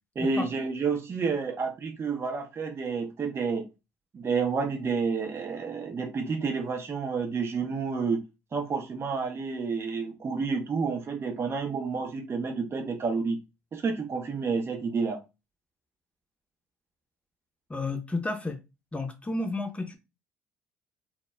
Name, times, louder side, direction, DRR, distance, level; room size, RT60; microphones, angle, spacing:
voice 1, 0.2-3.7 4.1-8.3 8.5-13.4 13.7-15.2, right 5 dB, 35° right, 0.6 m, -30 dB
voice 2, 17.7-18.6 18.9-20.0, left 2 dB, 15° left, 0.7 m, -32 dB
2.1 x 2.0 x 3.2 m
hypercardioid pair, 60°, 7 cm